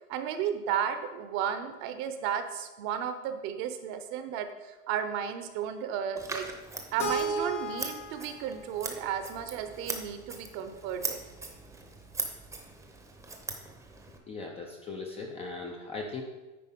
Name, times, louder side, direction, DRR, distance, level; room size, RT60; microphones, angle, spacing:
voice 1, 0.1-6.5 6.9-11.2, right 8 dB, 40° right, 8 dB, 0.8 m, -33 dB
Scissors, 6.2-14.2, right 3 dB, 5° right, 0.8 m, -40 dB
Keyboard (musical), 7.0-9.9, right 2 dB, 80° left, 1.7 m, -35 dB
voice 2, 14.3-16.2, left 3 dB, 15° left, 1 dB, 0.4 m, -38 dB
9.6 x 4.1 x 5.4 m, 1.1 s
supercardioid pair, 135°, 44 cm